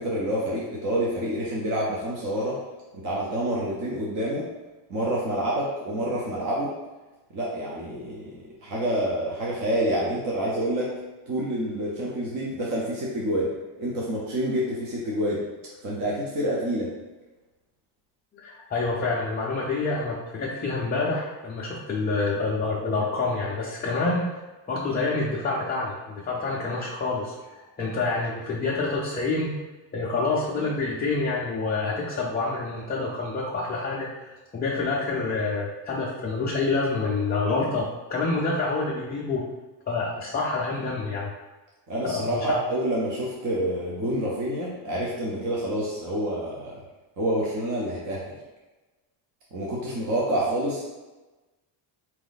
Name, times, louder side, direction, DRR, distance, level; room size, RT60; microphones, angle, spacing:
voice 1, 0.0-2.6 3.0-4.5 4.9-6.7 7.3-8.3 8.6-10.9 11.3-13.5 13.8-15.4 15.8-16.9 41.9-46.8 47.2-48.4 49.5-50.8, right 1 dB, 40° right, -5 dB, 0.8 m, -27 dB
voice 2, 18.3-24.4 24.7-29.5 29.9-39.4 39.9-41.3 42.0-42.6, left 3 dB, 20° left, -5 dB, 0.4 m, -27 dB
4.1 x 3.0 x 4.0 m, 1.2 s
cardioid pair, 160°, 49 cm